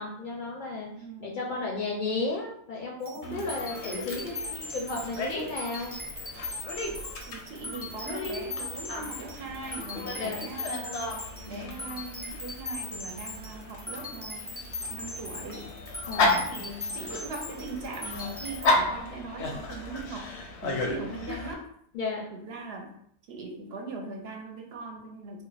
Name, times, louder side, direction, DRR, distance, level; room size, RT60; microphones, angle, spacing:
voice 1, 0.0-0.9 1.2-6.0 10.1-10.5 16.1-16.5 21.1-21.2 21.9-22.3, left 3 dB, 60° left, -1 dB, 0.6 m, -33 dB
voice 2, 0.9-1.5 3.2-3.5 7.3-11.0 11.5-14.5 14.9-15.7 16.2-20.4 20.6-21.6 22.3-22.9 23.3-25.4, right 3 dB, 70° right, 2 dB, 0.8 m, -40 dB
sound 1, 3.0-18.7, left 2 dB, 10° right, 0.6 m, -39 dB
Dog, 3.2-21.5, left 2 dB, 85° left, 0.9 m, -34 dB
2.4 x 2.2 x 3.9 m, 0.69 s
omnidirectional pair, 1.2 m